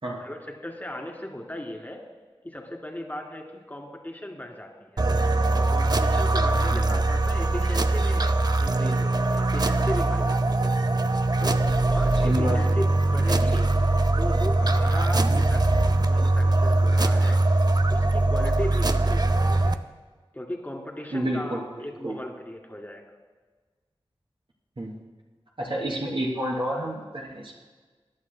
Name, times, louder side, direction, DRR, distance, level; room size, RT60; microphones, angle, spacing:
voice 1, 0.2-2.0 2.4-5.1 5.5-8.3 8.6-10.7 11.4-13.7 14.2-15.6 16.1-17.4 17.9-19.7 20.3-23.0, left 1 dB, 20° left, 1 dB, 2.1 m, -37 dB
sound 1, 5.0-19.7, right 2 dB, 45° right, 0.5 m, -22 dB
voice 2, 6.5-6.9 12.2-12.6 21.1-21.6 22.0-22.1 24.8-25.0 25.6-27.5, equal, 60° right, -3 dB, 3.1 m, -29 dB
22.5 x 11.0 x 2.2 m, 1.4 s
wide cardioid pair, 60°, 10 cm